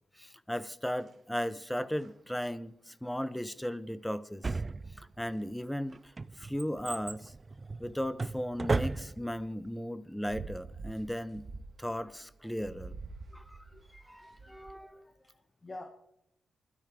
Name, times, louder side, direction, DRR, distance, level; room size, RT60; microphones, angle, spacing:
voice 1, 0.2-4.6 5.0-6.1 6.4-7.3 7.8-11.4 11.8-12.9 13.3-13.6 13.9-15.1, equal, 5° left, 0.8 m, -36 dB
sound 1, 0.9-1.2 1.8-2.1 5.3-5.5 5.9-6.1 10.1-14.8, right 4 dB, 55° right, 1.8 m, -47 dB
Drawer open or close, 4.4-5.3 5.9-9.4 9.7-9.8, right 3 dB, 35° right, 0.5 m, -34 dB
voice 2, 14.4-15.8, left 2 dB, 35° left, 1.7 m, -50 dB
29.0 x 12.5 x 3.8 m
cardioid pair, 70°, 0 cm